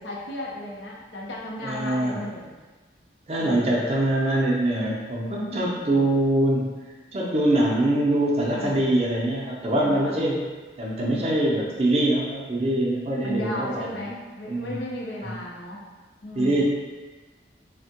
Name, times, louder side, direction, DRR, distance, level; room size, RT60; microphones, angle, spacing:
voice 1, 0.0-2.5 3.4-3.8 5.5-5.7 8.5-8.9 9.8-10.2 11.0-11.3 13.2-15.8 16.2-16.6, left 1 dB, 90° left, -3 dB, 0.6 m, -35 dB
voice 2, 1.6-2.2 3.3-6.7 7.1-10.4 10.8-14.1 14.5-14.7 15.2-15.3 16.4-16.6, right 1 dB, 35° right, -3 dB, 0.5 m, -23 dB
3.3 x 2.1 x 2.8 m, 1.3 s
head